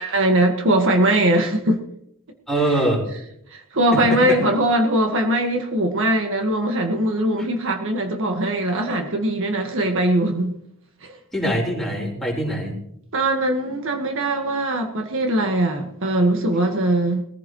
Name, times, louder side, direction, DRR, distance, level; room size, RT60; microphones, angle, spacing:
voice 1, 0.0-1.8 3.5-10.5 11.0-11.2 13.1-17.2, right 1 dB, 60° right, 4 dB, 1.7 m, -21 dB
voice 2, 2.5-3.0 3.9-4.4 11.3-12.8, right 1 dB, ahead, -2 dB, 4.3 m, -23 dB
21.5 x 15.0 x 3.2 m, 0.73 s
head